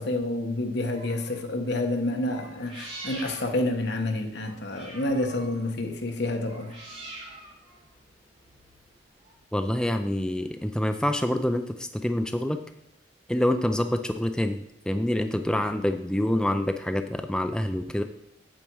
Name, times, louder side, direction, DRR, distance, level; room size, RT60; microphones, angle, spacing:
voice 1, 0.0-6.7, left 1 dB, 65° left, 1.3 m, -29 dB
sound 1, 0.9-1.5 2.2-9.3, right 2 dB, 30° right, 3.5 m, -45 dB
voice 2, 9.5-12.6 13.3-18.0, left 1 dB, 5° left, 0.4 m, -26 dB
8.8 x 7.4 x 4.6 m
head